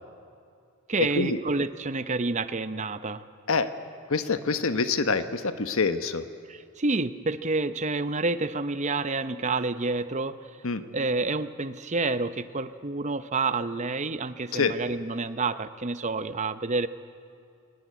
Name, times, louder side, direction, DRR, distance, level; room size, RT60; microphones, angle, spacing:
voice 1, 0.9-3.2 6.8-10.3 10.9-16.9, right 3 dB, 30° right, 12 dB, 0.7 m, -28 dB
voice 2, 4.1-6.2 10.6-10.8 14.5-14.7, left 4 dB, 65° left, 10 dB, 1.1 m, -26 dB
21.0 x 19.5 x 9.6 m, 2.4 s
head